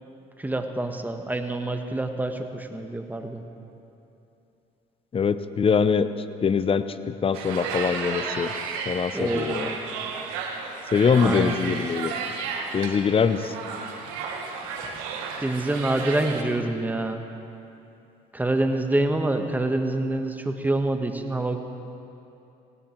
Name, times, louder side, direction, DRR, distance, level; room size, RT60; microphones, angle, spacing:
voice 1, 0.4-3.4 9.1-9.8 11.2-11.6 15.4-17.2 18.3-21.6, right 2 dB, 10° right, 6 dB, 1.5 m, -26 dB
voice 2, 5.1-6.1 6.4-8.5 8.9-9.7 10.9-12.1 12.7-13.5, left 6 dB, 35° left, 13 dB, 0.8 m, -23 dB
sound 1, 7.3-16.4, right 5 dB, 90° right, 1.5 m, -33 dB
18.0 x 17.0 x 4.6 m, 2.8 s
supercardioid pair, 75°, 17 cm